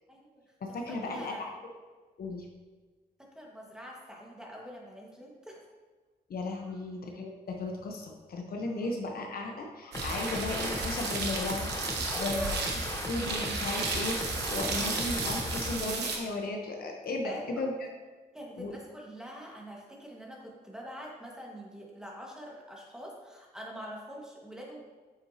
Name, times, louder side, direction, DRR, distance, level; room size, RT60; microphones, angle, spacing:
voice 1, 0.1-0.4 0.7-1.5 3.3-5.6 6.6-6.7 8.6-8.9 12.0-13.3 17.2-17.7 18.3-24.8, equal, 5° right, -2 dB, 1.6 m, -44 dB
voice 2, 0.6-1.5 2.2-2.5 6.3-11.7 12.1-12.4 13.1-17.7 18.6-18.7, left 2 dB, 60° left, 1 dB, 1.0 m, -35 dB
sound 1, 9.9-15.8, left 1 dB, 20° left, 1.0 m, -37 dB
sound 2, 9.9-16.2, right 4 dB, 85° right, 1.1 m, -34 dB
7.6 x 6.3 x 2.8 m, 1.4 s
cardioid pair, 80°, 17 cm